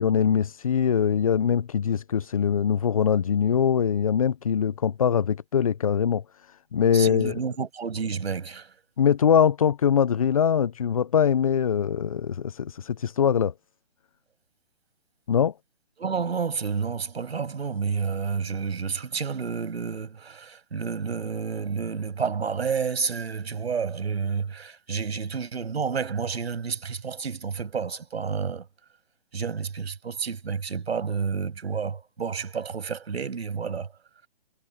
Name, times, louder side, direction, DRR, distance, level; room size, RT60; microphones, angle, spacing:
voice 1, 0.0-7.4 9.0-13.5 15.3-15.5, left 8 dB, 35° left, 0.4 m, -23 dB
voice 2, 6.9-8.7 16.0-28.7 29.3-33.9, right 6 dB, 80° right, 6.4 m, -30 dB
hypercardioid pair, 160°, 31 cm